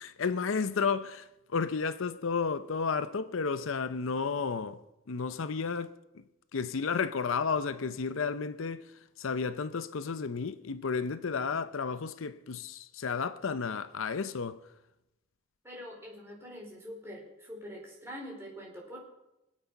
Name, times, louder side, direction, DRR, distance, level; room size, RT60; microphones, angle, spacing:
voice 1, 0.0-4.8 5.1-5.9 6.5-8.9 9.2-14.6, left 5 dB, 75° left, 0.6 m, -32 dB
voice 2, 15.6-19.0, equal, 10° right, 4.3 m, -44 dB
24.5 x 8.3 x 5.3 m
head